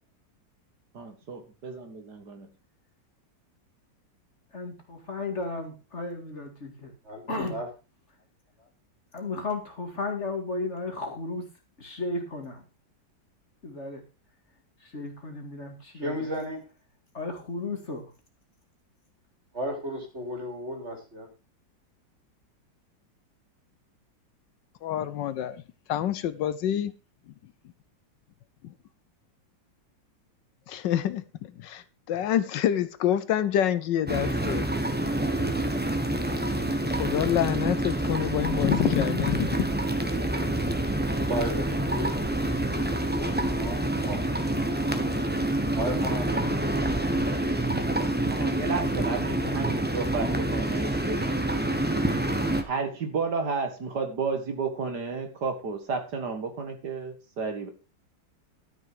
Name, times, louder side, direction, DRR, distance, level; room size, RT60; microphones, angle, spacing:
voice 1, 0.9-2.5 48.3-51.4 52.5-57.7, right 4 dB, 60° right, 2.2 m, -32 dB
voice 2, 4.5-6.9 7.3-7.6 8.6-8.7 9.1-11.5 11.8-12.6 13.6-14.0 14.8-16.3 17.1-18.1, left 3 dB, 40° left, 2.2 m, -34 dB
voice 3, 7.0-7.7 15.9-16.6 19.5-21.3 41.2-42.2 42.6-44.2 45.7-46.6, equal, 35° right, 3.4 m, -34 dB
voice 4, 24.8-25.6 25.9-26.9 28.6-28.7 30.7-31.2 31.6-34.6 36.9-39.7, left 11 dB, 75° left, 1.3 m, -27 dB
sound 1, 34.1-52.6, right 1 dB, 10° right, 0.8 m, -27 dB
12.5 x 6.3 x 4.9 m
omnidirectional pair, 2.0 m